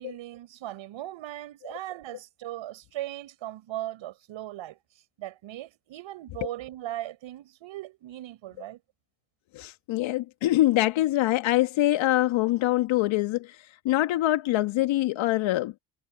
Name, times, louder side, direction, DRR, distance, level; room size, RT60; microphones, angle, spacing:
voice 1, 0.0-4.8 5.2-8.8, right 14 dB, 65° right, 5.7 m, -38 dB
voice 2, 9.5-15.7, left 16 dB, 65° left, 1.9 m, -24 dB
hypercardioid pair, 55°, 49 cm